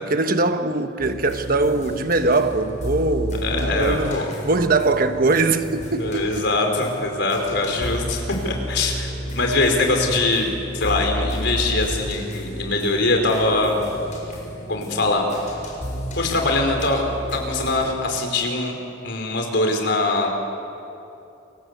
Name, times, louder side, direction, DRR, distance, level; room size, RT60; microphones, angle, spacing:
voice 1, 0.1-6.5, right 3 dB, 50° right, 1.3 m, -22 dB
sound 1, 1.0-17.8, equal, 40° left, 7.3 m, -32 dB
voice 2, 3.4-4.3 5.9-13.8 14.7-15.5 16.2-20.3, left 2 dB, 65° left, 4.9 m, -22 dB
29.0 x 24.0 x 8.2 m
head